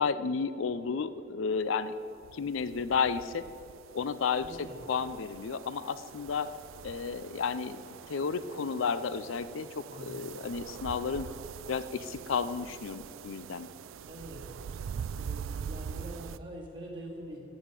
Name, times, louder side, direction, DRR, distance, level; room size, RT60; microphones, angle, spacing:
voice 1, 0.0-1.9 2.3-3.5 3.9-6.5 6.8-7.8 8.1-11.3 11.7-13.7, left 5 dB, 80° left, 14 dB, 0.5 m, -32 dB
sound 1, 2.2-16.4, right 7 dB, 90° right, 0.3 m, -44 dB
voice 2, 4.4-4.8 9.8-10.1 14.1-14.5 15.2-17.4, right 1 dB, 25° right, -4 dB, 2.3 m, -44 dB
16.5 x 5.7 x 7.4 m, 2.9 s
head